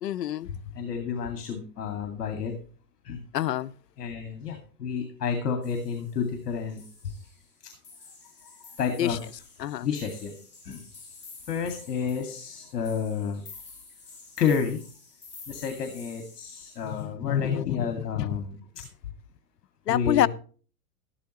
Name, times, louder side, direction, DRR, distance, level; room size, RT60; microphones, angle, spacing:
voice 1, 0.0-0.5 3.3-3.7 9.0-9.2 9.6-9.9 16.8-18.4 19.9-20.3, left 11 dB, 90° left, 0.7 m, -27 dB
voice 2, 0.7-2.5 3.0-3.2 4.0-6.8 8.8-9.2 9.8-10.3 10.6-10.8 11.5-13.4 14.4-14.8 15.5-18.6 19.9-20.3, left 6 dB, 75° left, 2.4 m, -30 dB
sound 1, 5.6-6.3 6.7-7.6 7.8-17.0, left 4 dB, 20° left, 5.6 m, -50 dB
12.5 x 12.5 x 3.1 m
hypercardioid pair, 110°, 48 cm